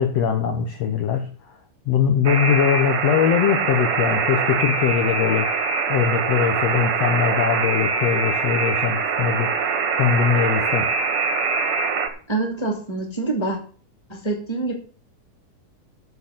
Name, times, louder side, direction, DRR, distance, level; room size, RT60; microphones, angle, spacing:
voice 1, 0.0-1.6 1.9-5.6 5.9-9.5 10.0-10.9, left 8 dB, 75° left, 5 dB, 1.5 m, -21 dB
Alarm, 2.2-12.1, right 5 dB, 60° right, 1.5 m, -23 dB
voice 2, 12.3-13.6 14.1-14.7, right 3 dB, 10° left, 2 dB, 1.9 m, -25 dB
8.6 x 7.0 x 7.9 m, 0.41 s
omnidirectional pair, 4.5 m